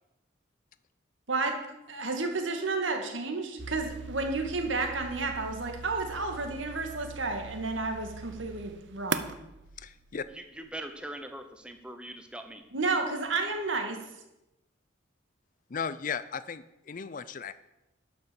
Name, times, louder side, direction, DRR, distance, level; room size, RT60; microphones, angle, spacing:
voice 1, 1.9-9.4 12.7-14.0, right 3 dB, 75° right, 4 dB, 2.0 m, -31 dB
sound 1, 3.6-10.6, right 5 dB, 60° right, 0.7 m, -41 dB
voice 2, 9.8-10.2 15.7-17.5, left 6 dB, 40° left, 15 dB, 0.4 m, -36 dB
voice 3, 10.3-12.6, right 1 dB, 5° right, 6 dB, 0.9 m, -42 dB
11.5 x 6.2 x 7.0 m, 0.91 s
head